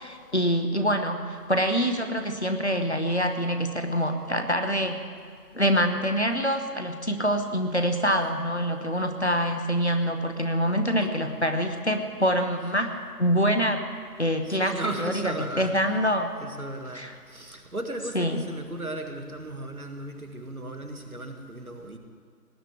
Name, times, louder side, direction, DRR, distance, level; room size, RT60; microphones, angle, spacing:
voice 1, 0.0-5.0 5.5-13.8 14.2-16.3 16.9-17.1 18.1-18.4, equal, 45° left, 6 dB, 1.1 m, -25 dB
voice 2, 14.5-15.7 16.4-17.0 17.3-22.0, right 1 dB, 60° right, 5 dB, 2.0 m, -35 dB
18.5 x 7.8 x 9.9 m, 2.1 s
figure-of-eight pair, 170°, 48 cm